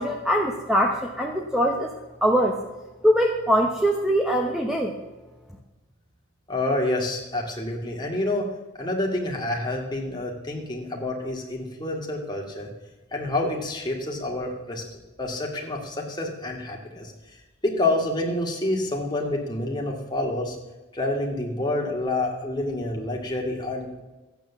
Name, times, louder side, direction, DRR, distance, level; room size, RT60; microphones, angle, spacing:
voice 1, 0.0-1.9 2.2-2.5 3.0-4.9, equal, ahead, 1 dB, 0.9 m, -22 dB
voice 2, 6.5-12.7 13.1-20.6 20.9-24.0, left 2 dB, 20° left, -1 dB, 2.2 m, -28 dB
14.0 x 9.2 x 7.1 m, 1.1 s
head